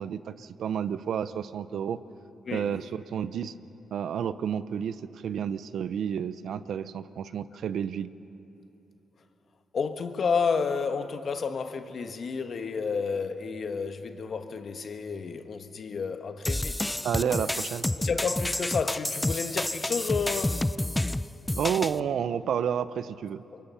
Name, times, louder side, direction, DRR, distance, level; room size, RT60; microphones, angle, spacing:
voice 1, 0.0-2.0 2.5-3.5 3.9-8.1 17.0-17.9 21.5-23.4, right 8 dB, 75° right, 0.6 m, -30 dB
voice 2, 9.7-16.9 18.0-20.6 23.5-23.6, left 5 dB, 55° left, 1.4 m, -31 dB
sound 1, 16.4-22.0, left 1 dB, 10° left, 0.5 m, -29 dB
27.5 x 23.0 x 5.7 m
cardioid pair, 75°, 0 cm